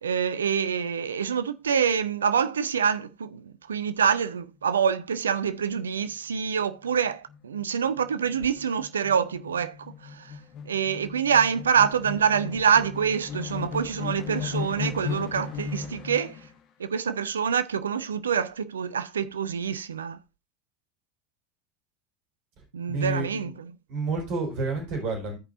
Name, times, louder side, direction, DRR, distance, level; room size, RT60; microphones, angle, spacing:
voice 1, 0.0-9.8 10.0-10.3 10.7-16.4 16.8-20.2 22.7-23.5, right 7 dB, 75° right, 0.5 m, -26 dB
sound 1, 5.8-6.1 6.5-6.6 6.9-16.5, left 6 dB, 45° left, 1.1 m, -37 dB
voice 2, 22.9-23.5 23.9-25.4, right 3 dB, 50° right, 4.3 m, -29 dB
15.5 x 5.3 x 2.6 m
figure-of-eight pair, 75°, 0 cm